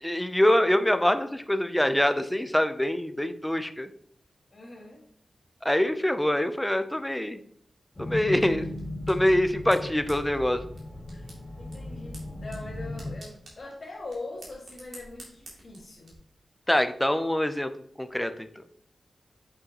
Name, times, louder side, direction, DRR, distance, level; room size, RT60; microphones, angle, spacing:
voice 1, 0.0-3.9 5.6-7.4 8.0-8.7 9.1-10.6 16.7-17.7 18.0-18.6, left 1 dB, 5° left, 10 dB, 0.5 m, -24 dB
voice 2, 4.5-5.1 8.3-8.7 11.1-11.3 11.6-16.2, left 2 dB, 45° left, -7 dB, 2.0 m, -42 dB
sound 1, 7.9-13.1, left 1 dB, 25° left, 2.4 m, -37 dB
sound 2, 8.4-16.1, right 1 dB, 75° right, 2.5 m, -52 dB
7.9 x 6.1 x 2.9 m, 0.66 s
wide cardioid pair, 120°, 0 cm